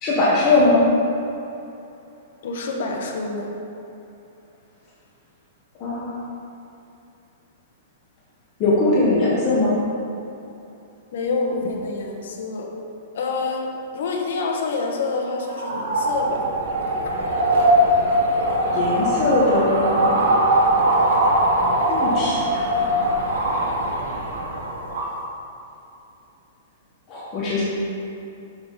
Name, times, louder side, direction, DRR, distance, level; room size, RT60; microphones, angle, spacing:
voice 1, 0.0-0.8 5.8-6.3 8.6-9.8 18.7-20.2 21.9-22.7 27.1-27.6, left 2 dB, 25° left, -7 dB, 1.3 m, -20 dB
voice 2, 2.4-3.5 11.1-12.7 13.1-16.5, left 3 dB, 65° left, 0 dB, 1.3 m, -27 dB
sound 1, 15.4-25.2, right 1 dB, 70° right, 1.5 m, -21 dB
6.7 x 5.8 x 5.5 m, 2.8 s
hypercardioid pair, 170°, 0 cm